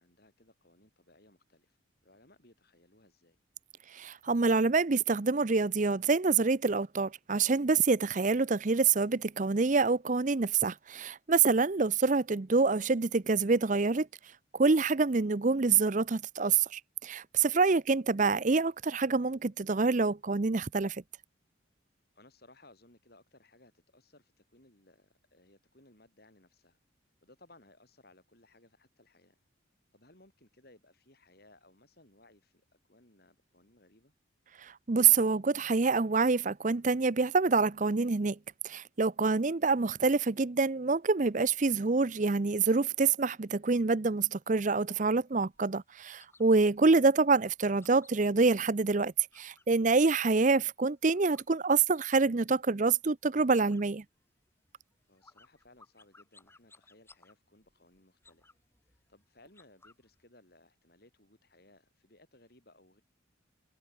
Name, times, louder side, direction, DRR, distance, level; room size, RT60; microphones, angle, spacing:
voice 1, 0.0-3.4 11.7-11.9 17.7-17.8 22.1-26.8 27.2-29.4 29.9-34.1 46.7-46.9 55.1-58.6 58.8-63.0, left 2 dB, 50° left, 5.3 m, -62 dB
voice 2, 3.9-14.1 14.5-21.0 34.6-38.4 38.6-54.0, right 4 dB, 40° right, 0.6 m, -26 dB
sound 1, 44.8-49.8 50.1-52.3 52.6-53.1 53.4-60.2, left 3 dB, 10° left, 5.5 m, -64 dB
head